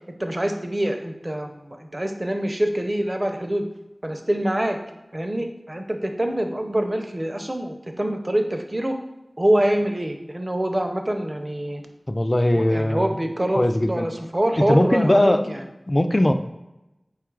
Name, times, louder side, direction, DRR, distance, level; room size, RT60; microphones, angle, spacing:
voice 1, 0.2-3.6 4.0-4.8 5.1-9.0 9.4-11.8 12.5-15.4, right 1 dB, 30° right, 5 dB, 0.5 m, -25 dB
voice 2, 12.1-13.1 13.5-14.1 14.6-16.3, left 1 dB, 30° left, 8 dB, 0.3 m, -20 dB
4.6 x 2.4 x 4.5 m, 0.94 s
wide cardioid pair, 55°, 0 cm